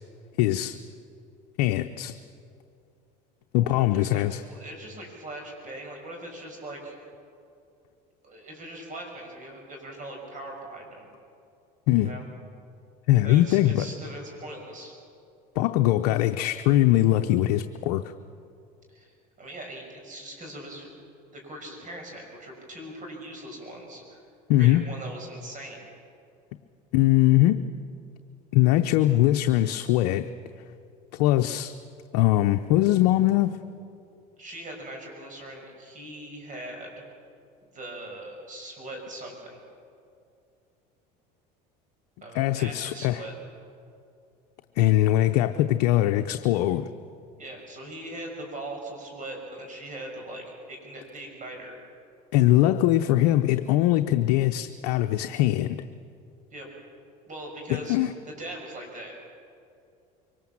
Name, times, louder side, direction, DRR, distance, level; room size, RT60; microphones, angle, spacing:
voice 1, 0.4-0.8 1.6-2.2 3.5-4.4 11.9-12.1 13.1-13.9 15.6-18.1 24.5-24.8 26.9-27.7 28.5-30.3 31.2-31.7 32.1-33.5 42.3-43.2 44.8-46.9 52.3-55.8 57.7-58.1, left 14 dB, 80° left, 7 dB, 0.7 m, -21 dB
voice 2, 3.6-7.0 8.2-11.1 12.0-12.3 13.2-14.9 18.9-20.9 21.3-24.2 24.6-25.8 34.4-37.0 37.7-39.6 42.2-43.3 47.4-51.8 56.5-56.7 57.3-59.1, right 1 dB, 40° right, 2 dB, 5.9 m, -40 dB
23.5 x 19.0 x 7.3 m, 2.5 s
supercardioid pair, 90°, 21 cm